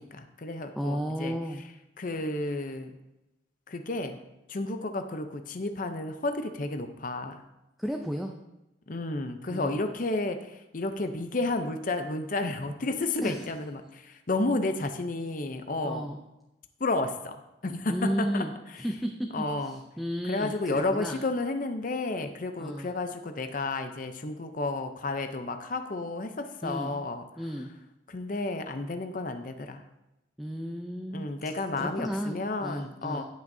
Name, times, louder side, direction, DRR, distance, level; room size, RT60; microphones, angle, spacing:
voice 1, 0.0-1.4 2.0-2.9 3.7-4.2 4.5-7.4 8.9-16.1 16.8-17.4 17.6-18.4 19.3-19.8 20.2-27.2 28.1-29.8 31.1-33.2, left 2 dB, 45° left, 7 dB, 0.6 m, -31 dB
voice 2, 0.8-1.6 7.8-8.3 9.5-9.8 13.2-13.5 15.8-16.2 17.9-18.5 18.8-19.3 19.6-21.2 22.6-22.9 26.6-26.9 27.4-27.7 30.4-31.3 31.8-33.2, equal, ahead, 2 dB, 0.5 m, -33 dB
18.0 x 6.0 x 2.7 m, 0.95 s
head